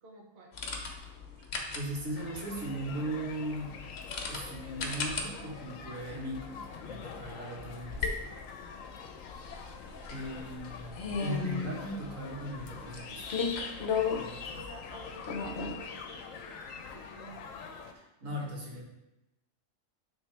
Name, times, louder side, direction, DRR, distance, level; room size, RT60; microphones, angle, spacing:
voice 1, 0.0-0.6 10.4-10.6 11.2-11.4 14.5-17.6, right 1 dB, 55° right, 0 dB, 0.9 m, -50 dB
sound 1, 0.5-15.8, left 5 dB, 55° left, 1.0 m, -37 dB
voice 2, 1.7-3.8 4.3-8.3 10.1-13.2 14.1-14.6 17.9-18.9, equal, 75° right, -3 dB, 1.8 m, -38 dB
sound 2, 2.2-17.9, left 6 dB, 80° left, 1.0 m, -45 dB
9.0 x 3.6 x 3.4 m, 0.95 s
omnidirectional pair, 1.4 m